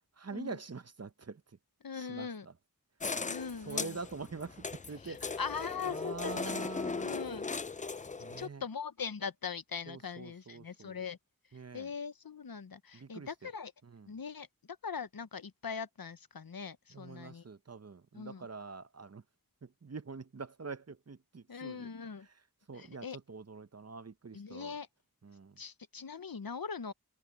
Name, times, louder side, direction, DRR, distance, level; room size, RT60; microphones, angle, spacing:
voice 1, 0.2-1.6 1.9-2.5 3.2-3.3 3.6-5.4 5.8-7.1 8.2-8.6 9.9-11.0 11.5-11.9 12.9-13.5 13.8-14.1 16.9-19.2 19.6-21.9 22.7-24.8 25.2-25.6, right 4 dB, 45° right, 0.8 m, -45 dB
voice 2, 1.8-2.5 3.3-4.0 5.0-6.6 7.0-7.5 8.4-11.2 11.7-13.7 14.1-17.4 18.1-18.5 21.5-22.3 22.7-23.2 24.3-24.9 25.6-26.9, left 6 dB, 75° left, 0.8 m, -41 dB
sound 1, 3.0-8.5, left 4 dB, 25° left, 0.3 m, -38 dB
wide cardioid pair, 45°, 35 cm